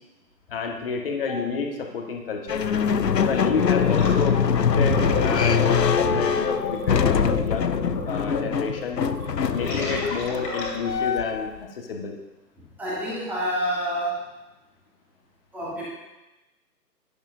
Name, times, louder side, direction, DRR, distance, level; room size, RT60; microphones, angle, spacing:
voice 1, 0.5-2.7 3.2-9.0 9.5-12.1, left 5 dB, 35° left, 2 dB, 1.6 m, -30 dB
sound 1, 2.5-11.6, left 7 dB, 80° left, 0.7 m, -23 dB
voice 2, 3.2-3.5 12.8-14.3 15.5-15.8, equal, 5° right, -8 dB, 2.4 m, -29 dB
Gurgling, 3.9-4.2 4.5-11.0, left 2 dB, 20° left, 2.7 m, -30 dB
16.5 x 10.5 x 2.7 m, 1.0 s
figure-of-eight pair, 135°, 49 cm